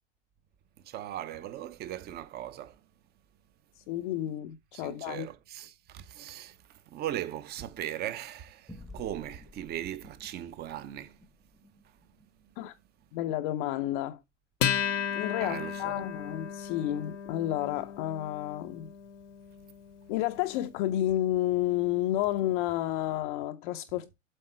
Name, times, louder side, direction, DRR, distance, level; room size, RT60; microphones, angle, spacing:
voice 1, 0.8-2.9 4.7-11.3 11.8-12.1 12.4-12.5 15.4-16.0, right 12 dB, 25° right, 0.7 m, -39 dB
voice 2, 3.8-5.3 12.6-12.8 13.1-14.2 15.1-18.9 20.1-24.1, left 13 dB, 40° left, 0.6 m, -31 dB
sound 1, 8.7-13.5, left 2 dB, ahead, 0.3 m, -53 dB
Acoustic guitar, 14.6-21.4, left 9 dB, 75° left, 1.0 m, -35 dB
7.8 x 4.0 x 4.4 m
hypercardioid pair, 110°, 37 cm